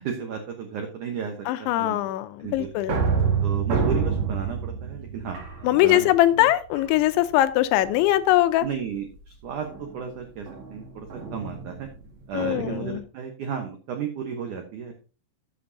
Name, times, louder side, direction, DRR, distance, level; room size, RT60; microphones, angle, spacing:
voice 1, 0.0-2.7 3.4-6.5 8.6-11.9 12.3-14.9, right 7 dB, 85° right, 4 dB, 1.7 m, -34 dB
voice 2, 1.5-3.0 5.6-8.7 12.3-13.0, left 15 dB, 85° left, 12 dB, 3.0 m, -21 dB
sound 1, 2.4-6.2 6.7-7.3 7.8-8.2 9.6-13.0, right 5 dB, 50° right, 2.4 m, -28 dB
13.5 x 7.8 x 2.8 m, 0.36 s
omnidirectional pair, 5.3 m